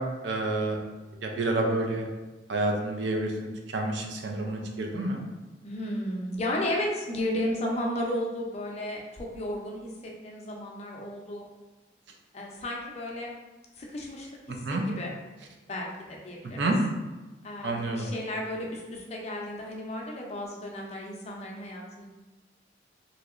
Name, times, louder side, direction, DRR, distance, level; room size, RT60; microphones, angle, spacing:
voice 1, 0.2-0.8 1.2-2.1 2.5-3.3 3.7-5.2 14.7-14.8 16.6-16.8 17.6-18.1, right 2 dB, 75° right, 2 dB, 0.5 m, -28 dB
voice 2, 5.6-11.5 12.3-13.3 13.8-14.3 14.7-15.1 15.7-16.7 17.4-22.1, left 1 dB, 35° left, -1 dB, 0.5 m, -33 dB
3.1 x 2.7 x 2.4 m, 1.1 s
head